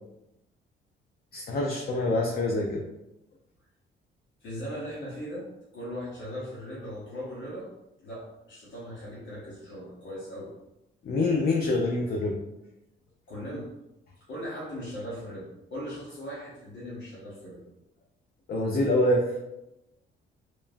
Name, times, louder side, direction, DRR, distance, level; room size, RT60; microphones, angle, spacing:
voice 1, 1.3-2.8 11.0-12.4 18.5-19.2, left 2 dB, 50° left, 0 dB, 0.4 m, -25 dB
voice 2, 4.4-5.5 5.7-7.7 8.0-10.5 13.3-13.7 14.2-17.6, equal, 70° left, -7 dB, 0.9 m, -38 dB
3.0 x 2.2 x 2.5 m, 0.91 s
cardioid pair, 90°, 20 cm